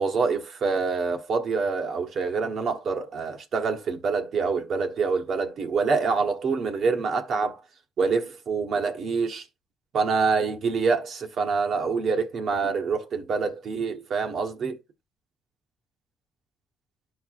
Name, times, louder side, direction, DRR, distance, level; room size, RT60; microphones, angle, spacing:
voice 1, 0.0-7.6 8.0-9.4 9.9-14.8, right 4 dB, 60° right, 1.2 m, -26 dB
12.5 x 4.6 x 2.5 m
cardioid pair, 90°, 0 cm